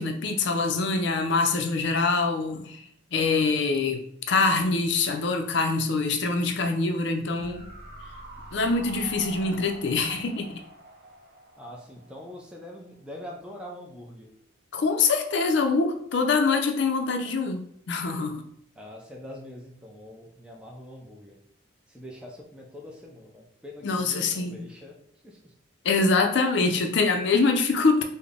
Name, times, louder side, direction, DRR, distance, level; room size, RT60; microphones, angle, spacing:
voice 1, 0.0-2.8 3.1-4.0 4.3-7.7 8.5-10.6 14.7-18.4 23.8-24.6 25.8-28.0, left 4 dB, 60° left, 5 dB, 0.5 m, -24 dB
sound 1, 7.4-12.6 12.9-13.0, right 1 dB, 50° right, 0.6 m, -45 dB
voice 2, 11.6-14.3 18.8-21.4 21.9-25.5, left 1 dB, 5° right, -1 dB, 0.4 m, -43 dB
3.8 x 2.1 x 3.5 m, 0.66 s
head